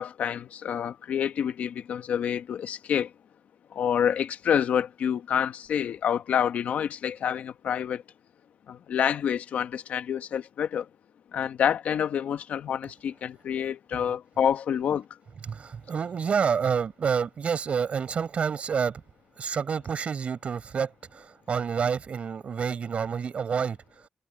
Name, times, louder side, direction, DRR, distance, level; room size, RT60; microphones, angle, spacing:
voice 1, 0.0-3.1 3.7-8.0 8.7-10.9 11.3-15.1, left 8 dB, 85° left, 1.3 m, -27 dB
voice 2, 15.4-19.0 19.4-24.0, right 6 dB, 60° right, 4.8 m, -28 dB
cardioid pair, 90°, 2 cm